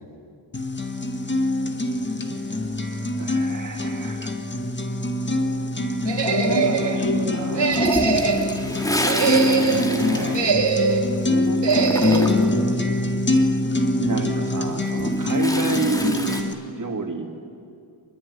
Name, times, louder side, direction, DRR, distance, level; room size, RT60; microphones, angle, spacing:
sound 1, 0.5-16.5, left 2 dB, 25° left, 1.7 m, -24 dB
voice 1, 3.1-4.3 6.5-7.9 8.8-10.4 14.0-17.3, right 3 dB, 45° right, 3 dB, 2.9 m, -30 dB
sound 2, 6.1-7.0 7.5-8.5 9.0-9.8 10.3-11.1 11.6-12.3, right 5 dB, 65° right, 2.6 m, -22 dB
voice 2, 6.2-7.9 11.3-13.1 13.4-13.6, left 3 dB, 60° left, 2 dB, 4.2 m, -30 dB
Toilet flush, 7.7-11.2 11.4-12.6 14.7-16.4, equal, 10° left, 2.3 m, -28 dB
25.5 x 21.5 x 10.0 m, 2.4 s
wide cardioid pair, 170°, 45 cm